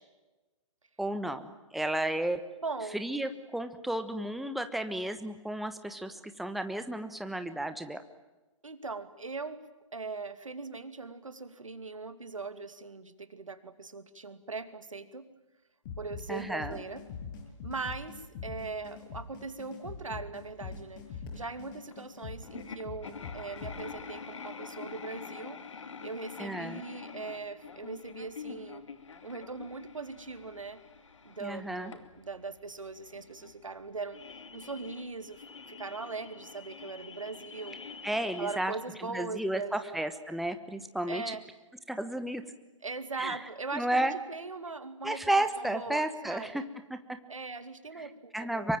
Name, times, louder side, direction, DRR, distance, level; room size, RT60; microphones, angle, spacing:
voice 1, 1.0-2.4 2.9-8.0 16.3-16.8 26.4-26.8 31.4-31.9 38.0-38.7 39.1-41.2 41.9-42.4 43.2-43.4 43.7-44.1 45.0-46.6 46.9-47.2 48.3-48.8, right 1 dB, ahead, 9 dB, 1.3 m, -32 dB
voice 2, 2.6-3.0 6.1-6.2 8.6-9.6 9.9-15.3 16.0-17.0 17.6-25.6 26.0-28.8 29.2-30.8 31.2-34.2 34.5-37.8 38.2-40.0 41.1-41.4 42.8-46.7 47.3-48.8, right 4 dB, 80° right, 11 dB, 2.6 m, -40 dB
sound 1, 15.9-23.8, left 5 dB, 40° left, 7.5 m, -43 dB
sound 2, 21.9-22.0 22.4-38.7, left 5 dB, 70° left, 2.8 m, -46 dB
25.5 x 23.5 x 9.0 m, 1.1 s
figure-of-eight pair, 125°, 16 cm